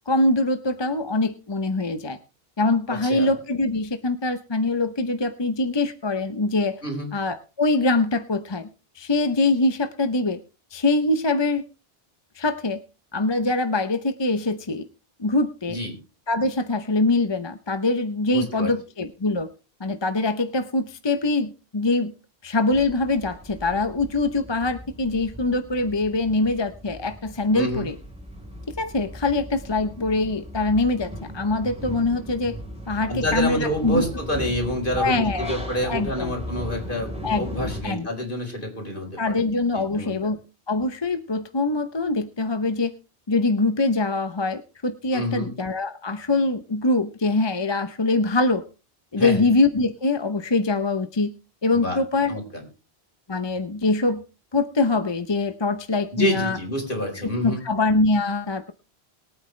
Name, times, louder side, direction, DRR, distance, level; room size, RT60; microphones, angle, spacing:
voice 1, 0.1-2.2 2.6-6.8 7.1-8.7 9.0-10.4 10.7-11.6 12.4-12.8 13.1-14.9 15.2-15.8 16.3-19.5 19.8-22.1 22.4-28.0 28.8-32.6 32.9-34.1 35.0-35.6 35.8-36.3 37.2-38.1 39.2-40.4 40.7-42.9 43.3-48.6 49.1-51.3 51.6-52.4 53.3-54.2 54.5-56.6 57.1-58.7, left 2 dB, 30° left, 10 dB, 0.8 m, -23 dB
voice 2, 2.9-3.3 6.8-7.1 15.7-15.9 18.3-18.7 27.5-27.9 33.1-39.4 39.7-40.3 45.1-45.5 49.2-49.4 51.7-52.0 52.3-52.6 56.1-57.6, left 1 dB, 55° left, 1 dB, 4.6 m, -28 dB
sound 1, 22.7-37.8, equal, 5° right, 4.0 m, -37 dB
22.5 x 8.9 x 3.2 m, 0.31 s
omnidirectional pair, 1.1 m